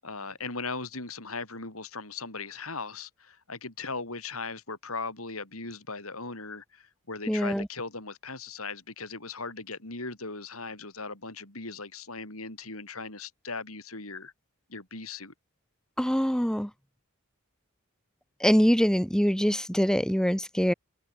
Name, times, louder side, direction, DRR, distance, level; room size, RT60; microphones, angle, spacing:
voice 1, 0.0-14.3 14.7-15.3, left 4 dB, 75° left, 6.9 m, -38 dB
voice 2, 7.3-7.7 16.0-16.7 18.4-20.7, equal, 5° left, 1.3 m, -24 dB
head